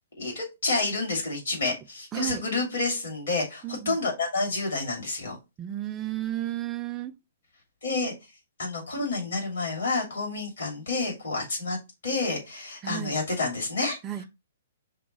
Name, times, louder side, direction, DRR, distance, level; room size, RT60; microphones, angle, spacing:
voice 1, 0.2-5.4 7.8-8.1 8.6-11.8 12.0-14.0, left 3 dB, 65° left, 2.6 m, -29 dB
voice 2, 2.1-2.4 3.6-4.0 5.6-7.1 12.8-13.2 14.0-14.2, right 13 dB, 20° right, 0.4 m, -32 dB
5.6 x 2.2 x 4.2 m
hypercardioid pair, 125°, 0 cm